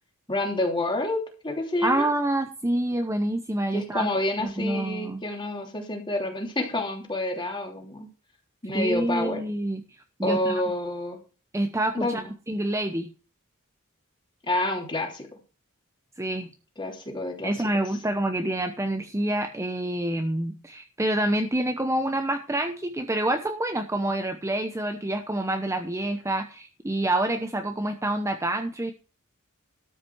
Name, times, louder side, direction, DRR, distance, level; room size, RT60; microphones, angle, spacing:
voice 1, 0.3-2.1 3.7-8.1 8.6-9.4 10.2-11.2 11.9-12.3 14.4-15.3 16.8-17.6, left 1 dB, 25° left, 1 dB, 3.2 m, -28 dB
voice 2, 1.8-4.1 4.4-5.2 8.7-9.8 10.2-10.6 11.5-12.2 12.5-13.1 16.2-16.5 17.4-28.9, right 1 dB, 15° right, 5 dB, 0.9 m, -27 dB
13.0 x 5.9 x 6.2 m, 0.35 s
head